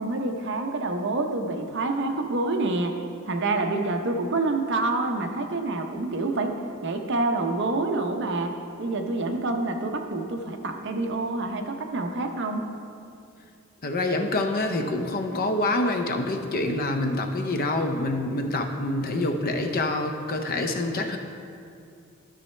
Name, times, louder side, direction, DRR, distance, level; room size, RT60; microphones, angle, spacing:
voice 1, 0.0-3.0 3.3-6.6 6.8-12.6, right 2 dB, 55° right, 4 dB, 0.7 m, -27 dB
voice 2, 13.8-21.2, left 2 dB, 40° left, 5 dB, 0.6 m, -26 dB
12.5 x 6.3 x 3.2 m, 2.5 s
head